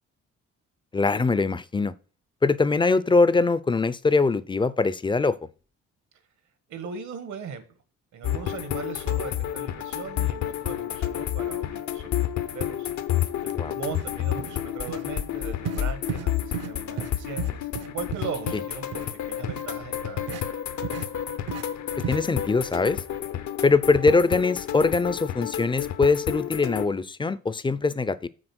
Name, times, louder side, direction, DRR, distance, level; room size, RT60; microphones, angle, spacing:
voice 1, 0.9-1.9 2.4-5.4 13.5-13.7 18.5-18.6 22.1-23.0 23.6-28.3, left 3 dB, 15° left, 0.5 m, -22 dB
voice 2, 6.7-7.8 8.1-12.9 13.4-20.4, right 6 dB, 75° right, 1.4 m, -38 dB
sound 1, 8.2-26.9, left 11 dB, 70° left, 0.8 m, -30 dB
sound 2, 13.4-13.5 13.9-14.1 14.4-14.6 14.9-15.0 15.6-15.8 16.1-16.3 16.5-16.7 17.0-17.1 17.4-18.6 18.9-19.1 19.5-19.6 20.3-20.4 20.8-21.1 21.5-21.6 22.0-22.2, right 9 dB, 55° right, 0.7 m, -34 dB
6.3 x 4.3 x 6.2 m
cardioid pair, 90°, 30 cm